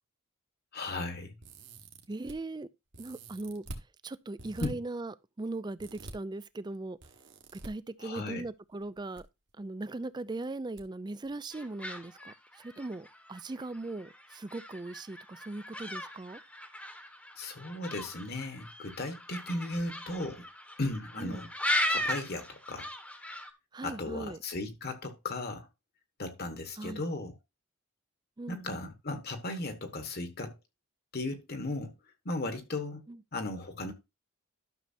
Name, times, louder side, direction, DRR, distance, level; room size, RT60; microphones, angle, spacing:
voice 1, 0.7-1.4 4.6-4.8 8.0-8.5 17.4-20.5 20.8-21.5 21.9-22.9 23.8-25.7 26.2-27.4 28.5-30.6 31.1-31.9 32.2-33.0 33.3-33.9, left 2 dB, 45° left, 1.3 m, -36 dB
sound 1, 1.4-2.3 2.9-3.8 4.4-4.7 5.8-6.1 7.0-7.7 8.8-9.2 9.5-9.6 10.8-10.9 11.2-11.4, right 1 dB, 55° right, 1.5 m, -45 dB
voice 2, 2.1-2.7 3.0-3.6 4.0-7.0 7.6-9.2 9.6-16.4 21.2-21.5 23.7-24.4 26.8-27.0 28.4-28.9 33.1-33.2, right 2 dB, 20° right, 0.4 m, -39 dB
sound 2, 11.5-23.5, left 1 dB, 5° left, 1.0 m, -38 dB
12.0 x 6.6 x 2.7 m
head